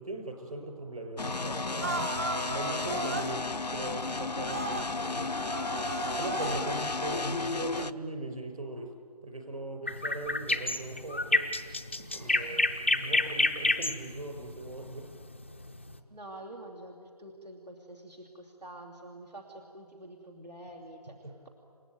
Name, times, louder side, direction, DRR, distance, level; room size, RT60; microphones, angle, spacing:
voice 1, 0.0-2.1 2.5-5.3 6.2-8.9 9.2-11.5 12.1-15.1 21.2-21.4, right 2 dB, 60° right, 4 dB, 5.2 m, -39 dB
sound 1, 1.2-7.9, left 3 dB, 85° left, 0.9 m, -33 dB
sound 2, 1.8-3.3 4.4-4.9 5.3-7.0 7.7-7.8, right 3 dB, 20° right, 0.7 m, -36 dB
sound 3, 9.9-16.0, left 2 dB, 20° left, 0.6 m, -28 dB
voice 2, 12.0-13.1 16.1-21.2, right 1 dB, 90° right, 2 dB, 2.8 m, -47 dB
29.0 x 17.0 x 9.2 m, 2.4 s
figure-of-eight pair, 165°, 21 cm